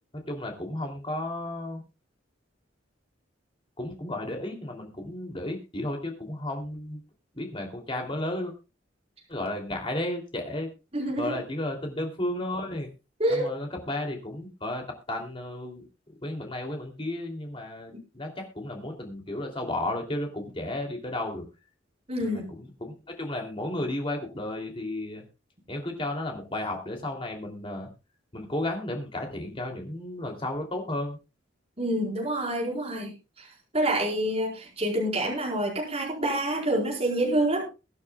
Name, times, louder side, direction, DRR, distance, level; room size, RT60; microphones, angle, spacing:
voice 1, 0.3-1.8 3.8-7.0 7.3-8.5 9.3-10.7 11.2-12.9 13.3-14.8 15.1-21.4 22.2-25.2 25.7-27.9 28.3-31.2, left 1 dB, 30° left, 2 dB, 3.0 m, -33 dB
voice 2, 10.9-11.4 13.2-13.5 22.1-22.4 31.8-33.1 33.4-33.5 33.7-37.7, right 1 dB, 35° right, -2 dB, 4.7 m, -27 dB
22.5 x 9.4 x 2.4 m, 0.29 s
head